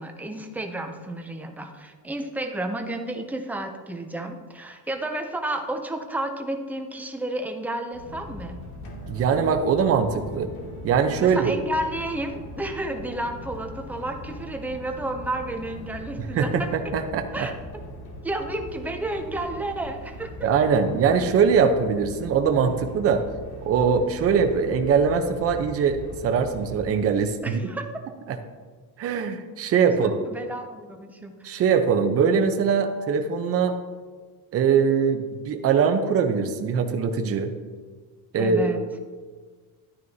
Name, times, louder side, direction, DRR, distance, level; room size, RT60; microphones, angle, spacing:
voice 1, 0.0-8.6 11.2-16.9 17.3-17.6 18.2-20.7 27.4-27.8 29.9-31.6 38.3-38.8, right 1 dB, 5° right, 4 dB, 0.5 m, -31 dB
sound 1, 7.9-27.1, left 1 dB, 65° left, 2.4 m, -40 dB
voice 2, 9.1-10.5 10.8-11.4 16.2-17.3 20.4-23.2 23.6-27.6 29.0-30.2 31.4-33.8 34.5-37.5 38.3-38.7, right 6 dB, 35° right, 6 dB, 0.8 m, -22 dB
12.5 x 9.5 x 2.8 m, 1.5 s
cardioid pair, 175°, 39 cm